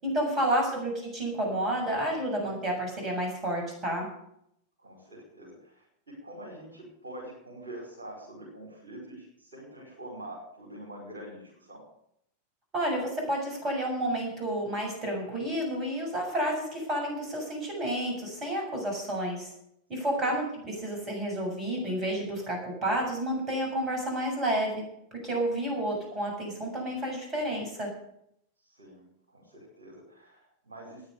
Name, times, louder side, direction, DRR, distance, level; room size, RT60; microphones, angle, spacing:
voice 1, 0.0-4.1 12.7-19.5 19.9-24.8 25.2-27.9, right 1 dB, 25° right, 1 dB, 7.1 m, -30 dB
voice 2, 4.8-11.8 20.1-20.3 28.6-31.1, right 1 dB, 70° right, -4 dB, 5.2 m, -45 dB
14.0 x 9.7 x 6.9 m, 0.74 s
figure-of-eight pair, 90°, 0 cm